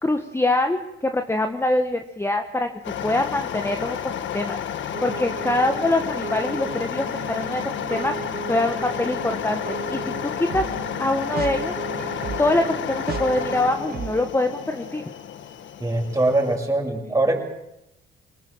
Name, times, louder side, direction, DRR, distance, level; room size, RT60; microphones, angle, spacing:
voice 1, 0.0-2.7 3.0-7.6 7.9-8.1 8.5-10.7 11.0-11.7 12.4-15.0, left 2 dB, 10° left, 6 dB, 1.6 m, -24 dB
sound 1, 2.8-16.6, left 9 dB, 70° left, 1.7 m, -31 dB
sound 2, 4.9-14.3, right 7 dB, 50° right, 2.0 m, -35 dB
voice 2, 15.8-17.4, right 2 dB, 15° right, 1 dB, 6.8 m, -22 dB
26.0 x 18.5 x 7.5 m, 0.88 s
cardioid pair, 90°, 20 cm